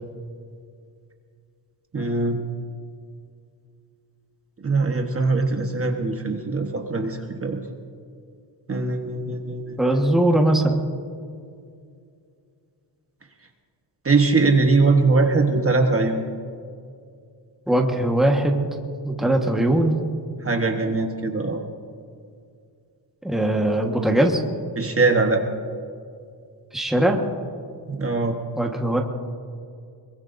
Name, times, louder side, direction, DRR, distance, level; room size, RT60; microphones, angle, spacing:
voice 1, 1.9-2.4 4.6-7.6 8.7-10.0 14.0-16.2 20.4-21.6 24.8-25.4 27.9-28.4, right 3 dB, 30° right, 3 dB, 1.2 m, -21 dB
voice 2, 9.8-10.8 17.7-18.7 19.0-20.0 23.2-24.4 26.7-27.2 28.6-29.0, right 1 dB, ahead, 1 dB, 1.3 m, -20 dB
24.0 x 22.5 x 2.6 m, 2.3 s
wide cardioid pair, 165°, 44 cm